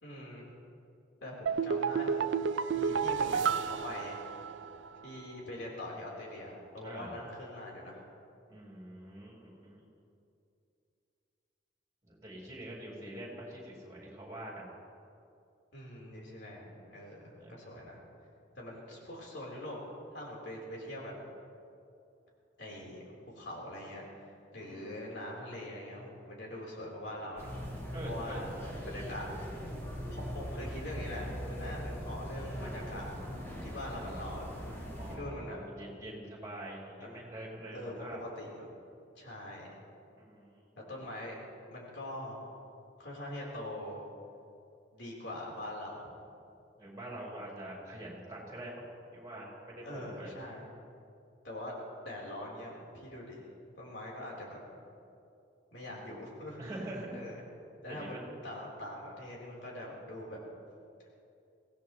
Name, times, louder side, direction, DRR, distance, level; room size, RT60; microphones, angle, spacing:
voice 1, 0.0-0.5 1.2-2.3 2.7-4.2 5.0-8.0 15.7-18.0 18.6-19.8 20.1-21.1 22.6-23.0 23.3-27.5 28.1-28.5 28.9-29.3 30.1-33.1 33.6-35.6 37.0-37.2 37.7-38.7 39.1-39.7 40.9-41.4 41.7-42.5 43.0-44.0 44.9-46.1 49.8-50.7 51.4-51.7 52.0-53.4 53.8-54.6 55.7-56.6 57.1-57.5 57.8-58.2 58.4-60.4, left 1 dB, 65° left, -3 dB, 3.9 m, -43 dB
sound 1, 1.5-4.9 5.2-5.3, right 6 dB, 80° right, 0.5 m, -31 dB
voice 2, 6.8-7.2 8.5-9.8 12.0-14.7 17.4-17.6 24.5-25.0 27.9-28.4 33.9-34.4 35.0-38.2 40.2-40.6 46.8-48.8 49.1-50.3 55.8-56.2 56.6-57.2 57.8-58.3, right 1 dB, 20° right, -3 dB, 4.5 m, -45 dB
sound 2, 27.4-35.2, equal, 15° left, 4.0 m, -40 dB
24.5 x 17.0 x 3.1 m, 2.6 s
head